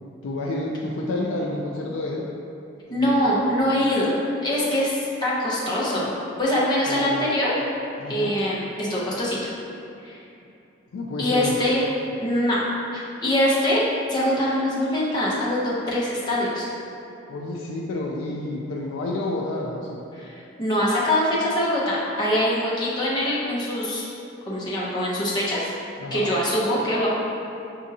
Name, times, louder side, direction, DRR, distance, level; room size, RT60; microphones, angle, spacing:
voice 1, 0.2-2.3 2.9-3.2 6.9-7.3 8.0-8.3 10.9-11.6 17.3-20.0 26.0-26.3, left 2 dB, 80° left, -2 dB, 0.4 m, -29 dB
voice 2, 2.9-6.1 6.4-7.5 8.1-9.4 10.0-10.2 11.2-11.8 12.2-13.8 14.1-16.7 20.1-24.0 24.5-25.7 26.1-27.1, left 1 dB, 20° left, -7 dB, 0.7 m, -23 dB
6.1 x 2.6 x 2.7 m, 2.7 s
head